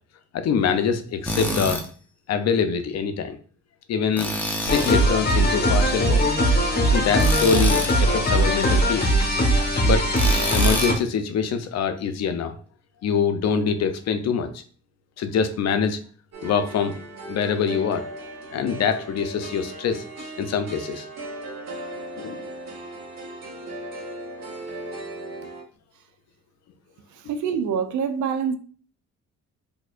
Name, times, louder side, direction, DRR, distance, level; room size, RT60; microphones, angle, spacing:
voice 1, 0.3-1.8 2.3-3.4 3.9-4.3 4.6-6.2 6.9-9.2 9.8-10.1 10.5-12.6 13.0-14.6 15.2-16.0 16.4-16.9 17.3-18.1 18.5-21.0 22.1-22.5, left 6 dB, 60° left, 0.6 m, -24 dB
Tools, 1.3-1.8 4.2-5.0 7.2-7.9 10.1-11.0, equal, 5° left, 0.6 m, -27 dB
sound 1, 4.7-10.9, right 1 dB, 30° left, 1.2 m, -20 dB
sound 2, 16.3-25.6, right 2 dB, 60° right, 1.2 m, -37 dB
voice 2, 27.1-28.5, right 7 dB, 80° right, 0.6 m, -25 dB
4.1 x 2.9 x 2.4 m
cardioid pair, 90°, 30 cm